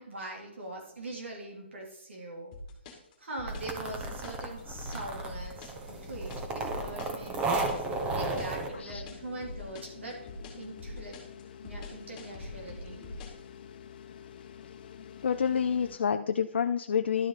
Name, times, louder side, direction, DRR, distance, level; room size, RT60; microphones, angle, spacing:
voice 1, 0.0-2.5 3.2-7.8 8.1-10.2 10.5-11.2 11.6-13.0, right 2 dB, 85° right, -1 dB, 3.3 m, -42 dB
sound 1, 2.5-13.4, left 2 dB, 25° left, 2.1 m, -44 dB
sound 2, 3.5-8.7, right 3 dB, 15° right, 1.0 m, -34 dB
sound 3, 5.9-16.0, left 8 dB, 45° left, 1.0 m, -49 dB
voice 2, 15.2-17.3, left 7 dB, 70° left, 8 dB, 0.5 m, -28 dB
12.0 x 6.1 x 4.1 m, 0.86 s
hypercardioid pair, 155°, 6 cm